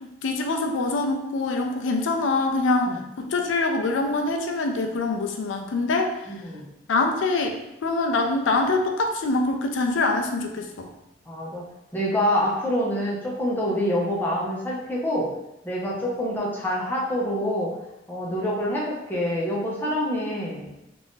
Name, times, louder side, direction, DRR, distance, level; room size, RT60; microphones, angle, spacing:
voice 1, 0.0-6.4 6.9-10.9, left 3 dB, 85° left, 3 dB, 0.4 m, -24 dB
voice 2, 6.3-6.6 11.3-11.6 11.9-15.3 15.6-17.7 18.1-20.7, equal, 10° left, -5 dB, 0.6 m, -26 dB
2.6 x 2.5 x 3.6 m, 0.88 s
head